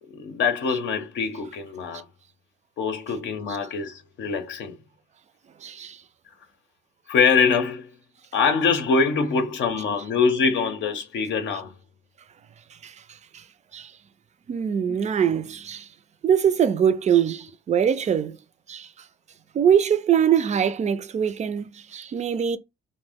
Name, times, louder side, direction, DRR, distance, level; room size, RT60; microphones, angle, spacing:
voice 1, 0.1-2.0 2.8-4.8 7.1-7.9 8.3-11.7, left 5 dB, 70° left, 0.6 m, -24 dB
voice 2, 5.6-6.0 12.8-12.9 13.3-13.4 13.7-13.9 14.5-15.9 16.2-18.4 18.7-18.9 19.5-22.6, right 8 dB, 35° right, 0.4 m, -22 dB
2.6 x 2.0 x 3.4 m
cardioid pair, 90°, 20 cm